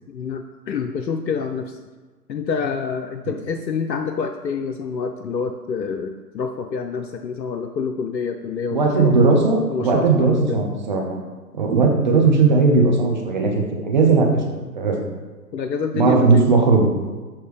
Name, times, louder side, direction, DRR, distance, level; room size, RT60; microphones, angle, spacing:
voice 1, 0.1-1.8 2.3-9.1 9.7-10.6 15.5-16.5, left 6 dB, 85° left, 6 dB, 0.6 m, -27 dB
voice 2, 8.7-11.2 11.5-14.4 14.7-15.0 15.9-17.0, right 4 dB, 30° right, 0 dB, 0.7 m, -17 dB
7.1 x 2.9 x 4.7 m, 1.3 s
figure-of-eight pair, 135°, 49 cm